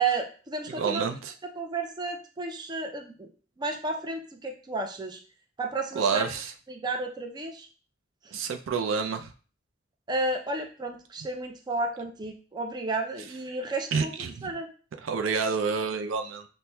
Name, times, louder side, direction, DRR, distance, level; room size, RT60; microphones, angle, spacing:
voice 1, 0.0-1.1 1.6-3.3 3.6-5.2 5.6-6.3 6.7-7.7 8.2-8.3 10.1-14.7, right 3 dB, 20° right, 3 dB, 0.4 m, -32 dB
voice 2, 0.7-1.3 6.0-6.5 8.3-9.3 13.9-14.5 15.0-16.5, right 5 dB, 85° right, 6 dB, 0.4 m, -28 dB
5.6 x 2.1 x 2.2 m, 0.39 s
head